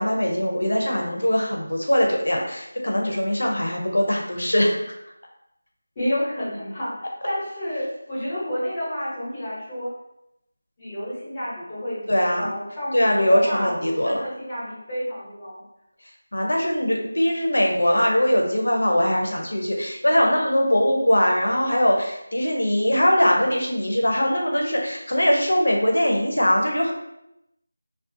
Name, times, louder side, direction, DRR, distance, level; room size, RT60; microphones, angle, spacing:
voice 1, 0.0-5.0 12.1-12.5 12.9-14.2 16.3-26.9, equal, 90° left, 0 dB, 0.7 m, -21 dB
voice 2, 6.0-9.9 10.8-13.8 14.0-15.6, equal, 15° left, -8 dB, 0.7 m, -30 dB
2.4 x 2.3 x 2.6 m, 0.84 s
figure-of-eight pair, 175°, 0 cm